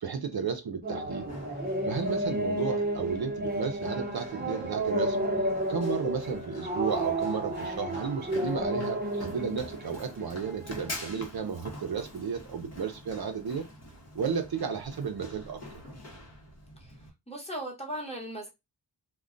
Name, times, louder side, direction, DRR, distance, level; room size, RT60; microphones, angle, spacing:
voice 1, 0.0-1.3 1.9-5.2 5.7-13.7 14.1-15.6, right 6 dB, 55° right, 0.6 m, -33 dB
sound 1, 0.8-11.1, right 1 dB, 20° right, 0.8 m, -32 dB
Run, 1.0-17.1, left 1 dB, 35° left, 0.9 m, -46 dB
voice 2, 17.3-18.5, right 1 dB, 15° left, 1.1 m, -37 dB
2.3 x 2.2 x 3.7 m
wide cardioid pair, 100°, 44 cm